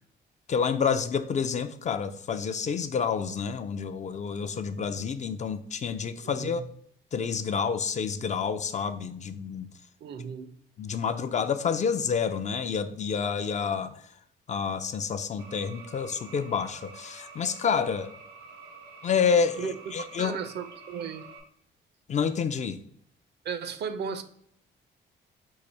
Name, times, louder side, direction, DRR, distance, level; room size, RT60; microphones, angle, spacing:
voice 1, 0.5-6.6 7.1-9.7 10.8-13.9 14.5-18.1 19.0-20.4 22.1-22.8, left 6 dB, 35° left, 0.4 m, -28 dB
voice 2, 6.2-6.7 10.0-10.5 19.6-19.8 20.2-21.2 23.4-24.2, right 6 dB, 60° right, 0.5 m, -35 dB
sound 1, 15.4-21.4, right 4 dB, 85° right, 1.0 m, -48 dB
4.7 x 2.5 x 4.0 m
cardioid pair, 90°, 20 cm